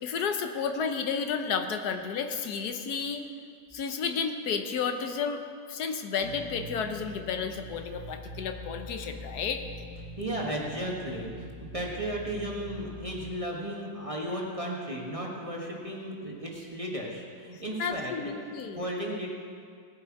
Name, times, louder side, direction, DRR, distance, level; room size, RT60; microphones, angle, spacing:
voice 1, 0.0-3.3 3.7-5.4 5.7-9.6 17.5-18.9, left 6 dB, 80° left, 6 dB, 1.3 m, -32 dB
sound 1, 6.2-13.3, left 1 dB, 45° left, 2.0 m, -44 dB
voice 2, 10.2-18.5 18.8-19.3, right 1 dB, 20° right, -2 dB, 1.4 m, -35 dB
17.5 x 7.9 x 4.7 m, 2.2 s
omnidirectional pair, 1.7 m